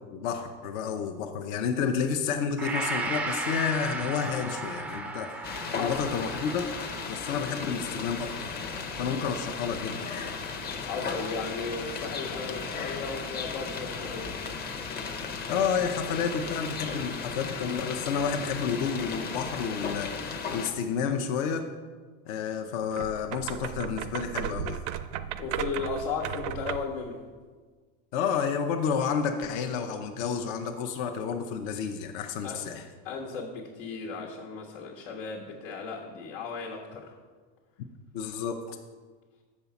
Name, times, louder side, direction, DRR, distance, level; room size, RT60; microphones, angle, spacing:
voice 1, 0.1-6.7 7.1-8.5 9.0-10.3 15.5-21.6 22.3-24.8 28.1-32.9 38.1-38.8, left 6 dB, 65° left, 5 dB, 0.7 m, -30 dB
Gong, 2.6-10.9 11.3-11.4, right 2 dB, 5° right, 0.3 m, -37 dB
sound 1, 5.4-20.7, left 5 dB, 30° left, 0.8 m, -36 dB
voice 2, 10.9-14.3 25.2-27.2 32.4-32.6 33.0-37.1, left 4 dB, 90° left, -1 dB, 1.4 m, -35 dB
sound 2, 22.9-27.0, right 10 dB, 90° right, 0.6 m, -35 dB
7.1 x 5.4 x 7.0 m, 1.5 s
cardioid pair, 150°, 32 cm